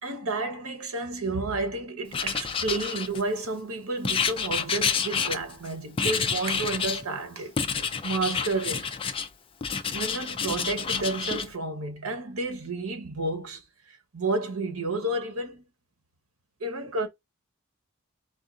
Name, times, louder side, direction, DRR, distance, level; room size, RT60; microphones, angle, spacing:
voice 1, 0.0-8.9 9.9-13.6 13.9-15.6 16.6-17.1, right 2 dB, 80° right, 1.0 m, -31 dB
Writing, 2.1-3.5 4.0-5.7 6.0-7.0 7.6-9.3 9.6-11.5, left 6 dB, 25° left, 0.4 m, -29 dB
3.6 x 2.3 x 2.5 m
head